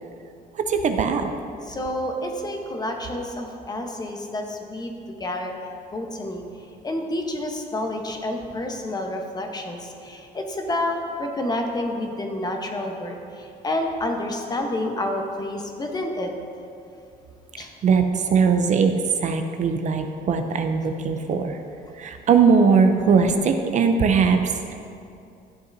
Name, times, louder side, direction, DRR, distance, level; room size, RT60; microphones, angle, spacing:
voice 1, 0.7-1.3 17.8-18.0 18.3-18.9 19.2-21.6 22.0-24.7, right 5 dB, 45° right, 6 dB, 0.6 m, -20 dB
voice 2, 1.6-4.9 5.2-5.5 5.9-6.4 6.8-16.3 17.6-17.7, left 1 dB, 25° left, 2 dB, 1.0 m, -29 dB
12.0 x 7.8 x 2.7 m, 2.5 s
cardioid pair, 110°, 17 cm